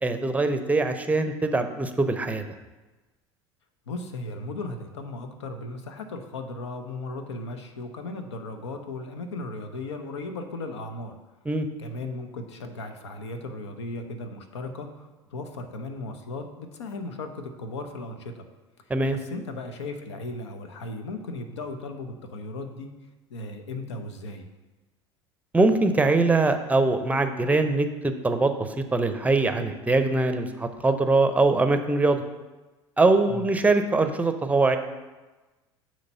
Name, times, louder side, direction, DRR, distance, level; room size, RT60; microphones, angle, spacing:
voice 1, 0.0-2.4 11.5-11.7 18.9-19.2 25.5-32.2 33.0-34.8, right 3 dB, 10° right, 7 dB, 0.6 m, -22 dB
voice 2, 3.9-11.1 11.8-18.5 19.1-22.9 23.3-24.5 33.3-33.4, left 2 dB, 75° left, 7 dB, 0.8 m, -36 dB
7.8 x 3.2 x 5.5 m, 1.2 s
figure-of-eight pair, 70°, 15 cm